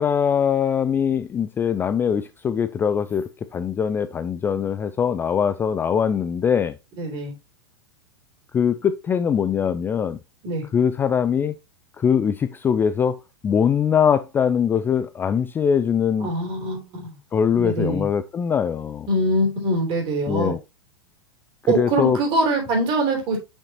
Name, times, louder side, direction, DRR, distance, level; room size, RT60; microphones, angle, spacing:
voice 1, 0.0-6.8 8.5-10.2 10.7-11.6 12.0-16.3 17.3-19.1 20.3-20.6 21.7-22.2, left 7 dB, 15° left, 0.3 m, -22 dB
voice 2, 7.0-7.3 10.4-10.6 16.2-17.1 17.5-18.0 19.1-20.5 21.7-23.4, right 2 dB, 35° right, 3.1 m, -23 dB
6.4 x 5.8 x 2.8 m
figure-of-eight pair, 95°, 14 cm